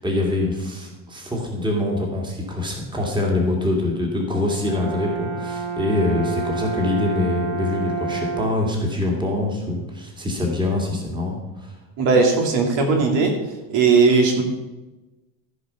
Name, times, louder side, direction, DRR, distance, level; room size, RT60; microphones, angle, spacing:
voice 1, 0.0-11.7, left 2 dB, 10° right, 0 dB, 2.1 m, -24 dB
Brass instrument, 4.3-8.7, right 4 dB, 40° right, 1.2 m, -29 dB
voice 2, 12.0-13.4 13.7-14.4, right 4 dB, 65° right, 2 dB, 2.3 m, -17 dB
14.5 x 5.1 x 5.6 m, 1.1 s
cardioid pair, 140°, 46 cm